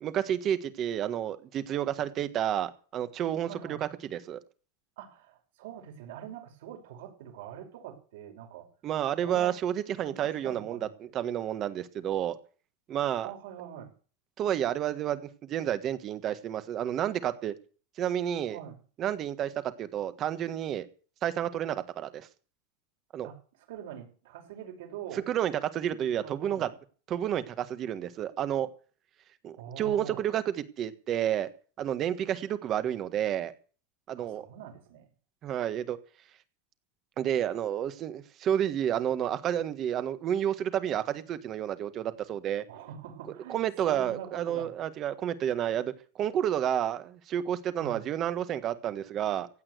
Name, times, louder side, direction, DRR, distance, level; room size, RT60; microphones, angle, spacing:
voice 1, 0.0-4.4 8.8-10.8 11.1-12.3 12.9-13.3 14.4-17.5 18.0-18.6 19.0-20.9 21.2-22.3 23.1-23.3 25.1-26.7 27.1-28.7 29.4-31.5 31.8-33.5 34.1-34.4 35.4-36.0 37.2-42.6 43.5-49.5, right 10 dB, 30° right, 1.5 m, -30 dB
voice 2, 3.4-3.8 5.0-8.7 9.2-9.6 9.9-10.9 13.2-13.9 18.5-18.8 23.2-23.4 23.7-25.3 26.0-26.7 29.6-30.2 34.2-35.1 42.7-44.7 47.8-48.1, right 10 dB, 70° right, 5.7 m, -44 dB
15.5 x 8.8 x 8.0 m
supercardioid pair, 160°, 0 cm